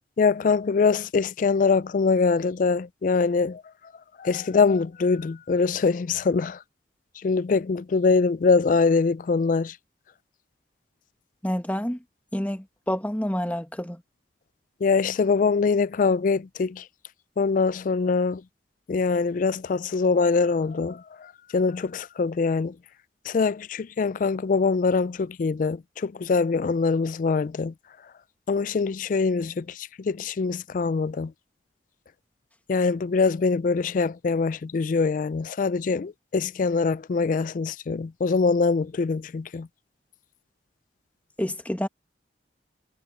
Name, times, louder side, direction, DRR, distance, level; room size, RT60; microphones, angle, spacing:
voice 1, 0.2-3.6 4.2-6.6 7.2-9.8 14.8-16.8 17.4-18.4 18.9-22.7 23.3-27.7 28.5-31.3 32.7-39.7, left 4 dB, 45° left, 0.3 m, -23 dB
voice 2, 11.4-12.0 12.3-14.0 41.4-41.9, equal, 10° left, 1.5 m, -28 dB
head